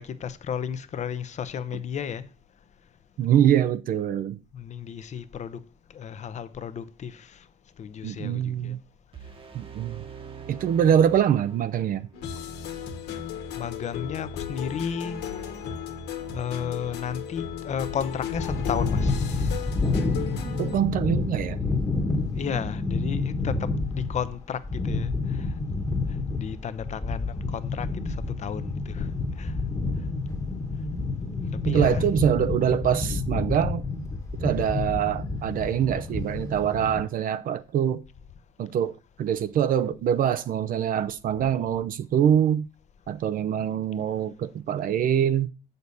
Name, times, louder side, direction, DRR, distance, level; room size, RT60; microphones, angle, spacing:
voice 1, 0.0-2.3 4.5-5.6 5.9-7.5 7.8-8.8 13.6-15.3 16.3-19.7 22.3-25.9 26.4-29.5 31.6-32.1, left 7 dB, 45° left, 0.8 m, -33 dB
voice 2, 3.2-4.4 8.0-8.8 9.5-10.0 10.5-12.1 20.6-21.6 31.7-33.8 34.4-38.0 38.6-42.7 43.1-45.5, right 9 dB, 55° right, 0.7 m, -24 dB
sound 1, 9.1-12.2, right 7 dB, 30° right, 1.2 m, -43 dB
sound 2, 12.1-20.8, left 8 dB, 80° left, 1.5 m, -35 dB
sound 3, 18.3-37.0, left 3 dB, 20° left, 1.3 m, -29 dB
8.1 x 6.8 x 4.1 m
cardioid pair, 110°, 17 cm